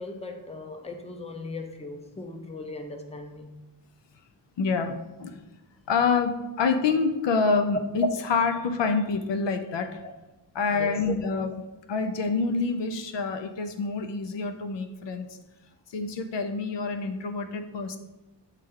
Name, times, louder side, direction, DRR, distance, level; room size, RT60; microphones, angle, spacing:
voice 1, 0.0-3.5 10.0-10.1 10.7-11.0, left 3 dB, 15° left, 4 dB, 0.7 m, -38 dB
voice 2, 4.6-5.4 5.9-10.0 10.5-11.5 11.9-15.3 15.9-18.0, left 4 dB, 80° left, 7 dB, 0.7 m, -27 dB
8.2 x 3.3 x 3.7 m, 1.1 s
wide cardioid pair, 95°, 42 cm